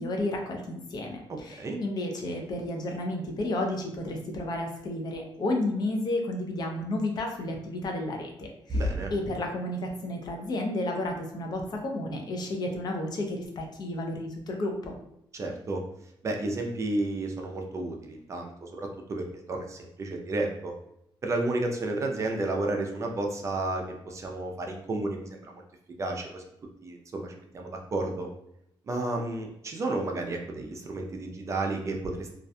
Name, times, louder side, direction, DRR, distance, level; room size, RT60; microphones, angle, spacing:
voice 1, 0.0-8.9 9.1-14.9, left 1 dB, 50° left, 2 dB, 0.4 m, -32 dB
voice 2, 1.3-1.8 8.7-9.1 15.3-15.8 16.2-20.7 21.2-25.6 26.0-26.4 26.8-28.3 28.9-32.4, right 2 dB, 35° right, 2 dB, 0.3 m, -32 dB
2.4 x 2.1 x 2.6 m, 0.79 s
wide cardioid pair, 150°, 9 cm